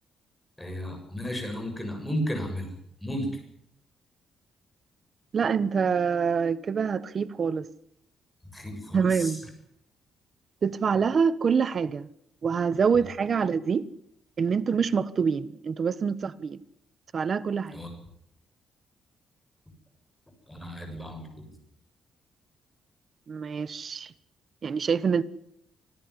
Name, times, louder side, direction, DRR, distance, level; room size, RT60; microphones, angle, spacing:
voice 1, 0.6-2.7 3.0-3.3 8.5-9.4 17.7-17.9 20.5-21.5, equal, 10° left, 7.4 m, -33 dB
voice 2, 5.3-7.6 8.9-9.4 10.6-12.1 12.4-13.9 14.4-16.6 17.1-17.8 23.3-24.1 24.6-25.2, right 6 dB, 45° right, 1.3 m, -26 dB
25.5 x 13.5 x 9.9 m
cardioid pair, 115°, 0 cm